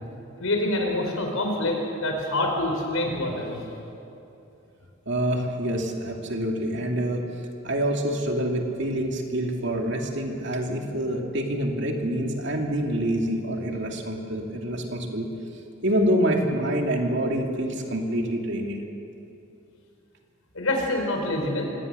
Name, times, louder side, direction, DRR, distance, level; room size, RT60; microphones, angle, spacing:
voice 1, 0.4-3.6 20.5-21.6, left 1 dB, 85° left, 2 dB, 4.6 m, -26 dB
voice 2, 5.1-7.2 7.6-15.3 15.8-18.8, right 1 dB, 60° right, 1 dB, 2.6 m, -26 dB
25.0 x 18.0 x 6.8 m, 2.8 s
head